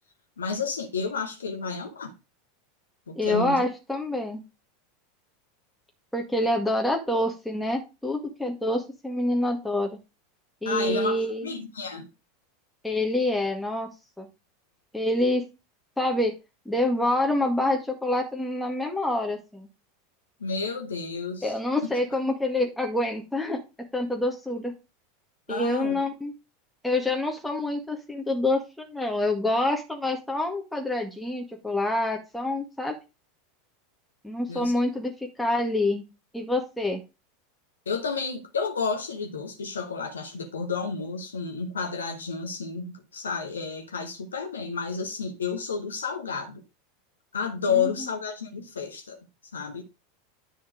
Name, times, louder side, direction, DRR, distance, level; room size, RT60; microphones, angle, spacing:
voice 1, 0.4-2.1 3.1-3.6 10.6-12.1 20.4-21.6 25.5-26.0 34.5-34.7 37.9-46.6 47.3-49.2 49.5-49.8, left 5 dB, 75° left, 1.2 m, -31 dB
voice 2, 3.2-4.4 6.1-10.0 10.6-11.5 12.8-13.9 14.2-14.3 14.9-15.4 16.0-16.3 16.7-19.7 21.4-23.6 23.9-24.7 25.5-26.3 26.8-33.0 34.2-36.0 36.3-37.0 47.7-47.8, left 1 dB, 5° left, 1.9 m, -27 dB
10.5 x 4.4 x 5.0 m
figure-of-eight pair, 85°, 0 cm